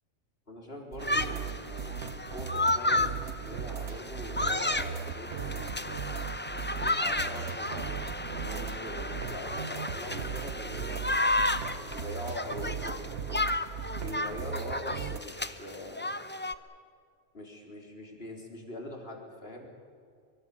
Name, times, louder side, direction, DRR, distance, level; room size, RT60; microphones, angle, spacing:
voice 1, 0.5-6.1 7.0-13.4 14.0-16.1 17.3-19.7, left 1 dB, 45° left, 0 dB, 4.2 m, -43 dB
sound 1, 0.9-15.2, right 7 dB, 60° right, 1.3 m, -38 dB
sound 2, 1.0-16.5, left 2 dB, 10° left, 0.5 m, -32 dB
24.0 x 24.0 x 7.3 m, 2.2 s
omnidirectional pair, 1.4 m